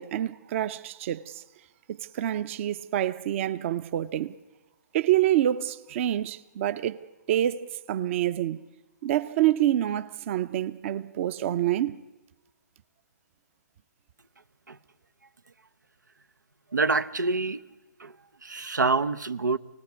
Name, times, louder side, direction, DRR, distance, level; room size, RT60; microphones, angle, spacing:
voice 1, 0.0-1.4 1.9-4.4 4.9-7.0 7.3-8.7 9.0-12.0, right 12 dB, 45° right, 0.8 m, -27 dB
voice 2, 16.7-17.6 18.0-18.1 18.4-19.6, right 3 dB, 90° right, 0.9 m, -26 dB
28.0 x 18.5 x 8.2 m
figure-of-eight pair, 130°, 10 cm